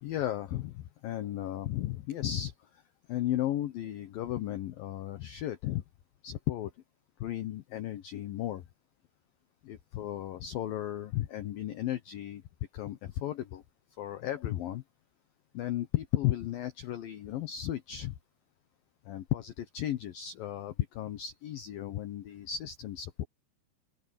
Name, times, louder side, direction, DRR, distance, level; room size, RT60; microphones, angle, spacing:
voice 1, 0.0-2.8 3.1-5.8 6.2-6.7 7.2-8.6 9.6-12.4 12.7-13.6 14.0-14.8 15.5-18.1 19.1-23.2, left 13 dB, 80° left, 2.0 m, -34 dB
open air
omnidirectional pair, 5.5 m